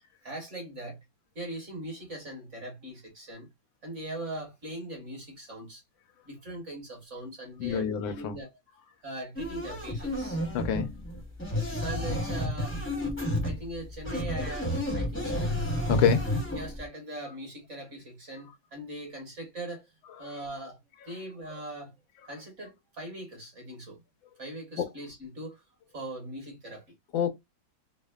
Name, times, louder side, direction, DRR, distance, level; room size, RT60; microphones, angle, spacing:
voice 1, 0.2-1.0 1.3-3.5 3.8-5.8 6.2-8.5 9.0-10.4 11.8-12.8 13.4-15.5 16.5-19.9 20.2-21.9 22.3-24.0 24.4-25.6 25.9-26.9, right 1 dB, 40° right, 1.4 m, -40 dB
voice 2, 7.6-8.4 10.5-10.9 15.9-16.3 24.8-24.9 27.1-27.3, left 8 dB, 80° left, 1.3 m, -27 dB
sound 1, 9.4-16.8, left 1 dB, 10° left, 0.7 m, -31 dB
3.4 x 2.1 x 2.2 m
omnidirectional pair, 2.1 m